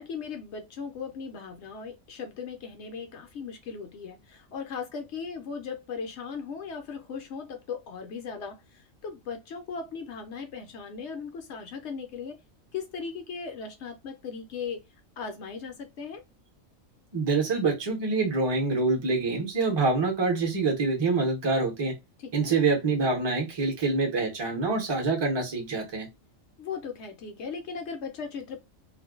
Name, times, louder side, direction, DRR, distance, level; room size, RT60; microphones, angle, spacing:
voice 1, 0.0-12.4 12.7-14.8 15.2-16.2 22.2-22.6 26.6-28.6, left 5 dB, 65° left, 0.8 m, -38 dB
voice 2, 17.1-22.0 22.3-26.1, right 3 dB, 25° right, 0.6 m, -26 dB
2.4 x 2.2 x 2.3 m
omnidirectional pair, 1.4 m